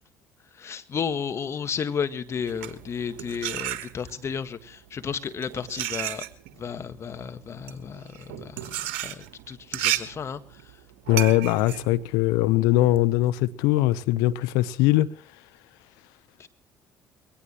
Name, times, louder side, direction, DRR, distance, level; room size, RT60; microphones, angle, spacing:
voice 1, 0.5-6.2 6.6-8.8 9.0-10.8 16.4-16.5, left 7 dB, 45° left, 1.7 m, -33 dB
sound 1, 2.4-4.3 5.1-13.0, right 13 dB, 85° right, 1.4 m, -33 dB
voice 2, 11.1-15.1, left 16 dB, 80° left, 0.9 m, -21 dB
22.0 x 17.5 x 3.1 m
hypercardioid pair, 60°, 6 cm